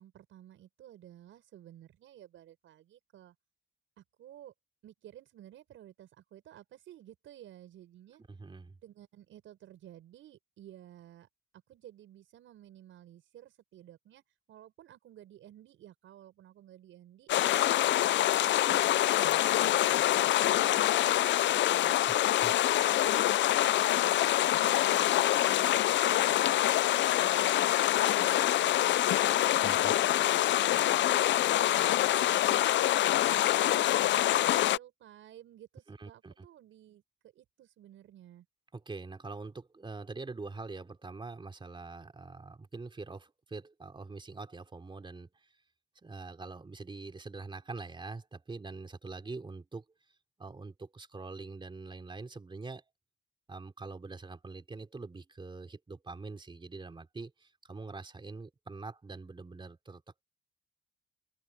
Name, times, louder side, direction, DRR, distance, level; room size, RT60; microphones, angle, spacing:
voice 1, 0.0-3.4 4.0-4.5 4.8-8.2 8.8-11.3 11.5-14.2 14.5-17.3 17.8-19.9 20.5-22.4 22.9-24.2 24.6-29.3 29.7-34.0 34.3-38.5, right 12 dB, 80° right, 6.8 m, -54 dB
voice 2, 8.3-8.8 22.1-22.2 22.4-22.5 29.6-29.9 35.9-36.5 38.7-45.5 46.0-49.8 50.4-52.8 53.5-60.2, right 3 dB, 25° right, 3.4 m, -44 dB
sound 1, 17.3-34.8, left 13 dB, 65° left, 0.5 m, -25 dB
open air
cardioid pair, 90°, 20 cm